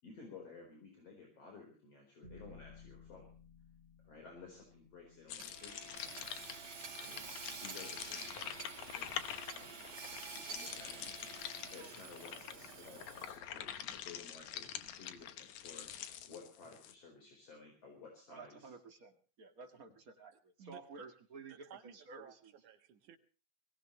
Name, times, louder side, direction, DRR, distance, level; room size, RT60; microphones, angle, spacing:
voice 1, 0.0-3.3 4.0-9.9 10.3-11.5 11.7-18.7, left 4 dB, 55° left, 1 dB, 5.5 m, -55 dB
sound 1, 2.2-6.4, left 4 dB, 25° left, 3.4 m, -59 dB
sound 2, 5.3-16.9, left 10 dB, 75° left, 2.4 m, -46 dB
Hammer / Sawing, 5.4-13.6, right 5 dB, 65° right, 4.5 m, -49 dB
voice 2, 18.3-22.5, right 4 dB, 35° right, 5 dB, 1.9 m, -53 dB
voice 3, 20.3-21.1 21.5-23.2, right 8 dB, 85° right, 6 dB, 3.1 m, -56 dB
22.5 x 17.5 x 3.2 m, 0.37 s
omnidirectional pair, 3.4 m